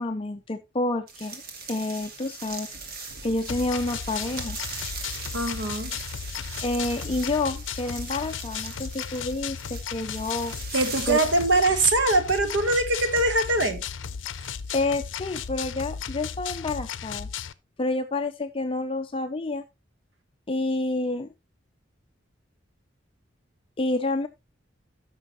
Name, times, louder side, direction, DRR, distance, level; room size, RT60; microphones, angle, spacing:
voice 1, 0.0-1.4 1.7-2.7 3.2-4.6 6.6-10.5 11.1-11.2 14.7-17.3 17.8-19.6 20.5-21.3 23.8-24.3, left 2 dB, 30° left, 0.5 m, -29 dB
sound 1, 1.1-12.4 12.8-15.0 15.8-15.9 16.5-16.7, right 4 dB, 55° right, 1.6 m, -40 dB
sound 2, 3.5-17.5, left 7 dB, 85° left, 0.5 m, -35 dB
voice 2, 5.3-5.9 10.7-13.8, right 2 dB, 75° right, 1.3 m, -22 dB
13.0 x 6.1 x 2.9 m
head